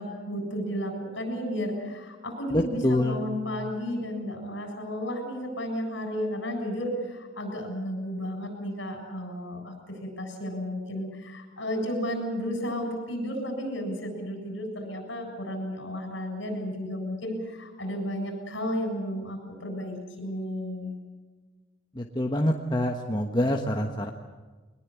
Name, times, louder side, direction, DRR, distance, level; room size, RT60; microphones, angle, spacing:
voice 1, 0.0-20.9, equal, 60° left, 4 dB, 7.5 m, -33 dB
voice 2, 2.5-3.2 21.9-24.1, left 1 dB, 20° left, 2 dB, 1.2 m, -26 dB
22.5 x 21.0 x 8.4 m, 1.3 s
head